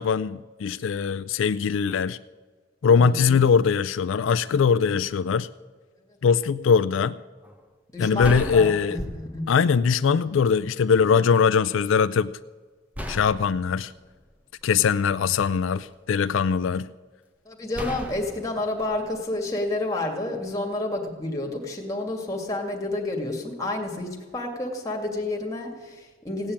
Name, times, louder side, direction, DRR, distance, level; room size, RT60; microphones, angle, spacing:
voice 1, 0.0-2.2 2.8-5.5 6.2-7.2 8.0-9.0 9.5-12.3 13.1-13.9 14.6-16.9, left 6 dB, 80° left, 14 dB, 0.4 m, -21 dB
voice 2, 2.9-3.4 7.9-8.8 9.1-9.5 17.5-26.5, left 2 dB, 15° left, 1 dB, 2.2 m, -30 dB
sound 1, 7.4-7.6 8.2-9.5 10.4-10.5 12.9-15.1 15.7-16.5 17.7-19.8, equal, 5° right, 1.0 m, -37 dB
16.5 x 8.6 x 8.7 m, 1.4 s
head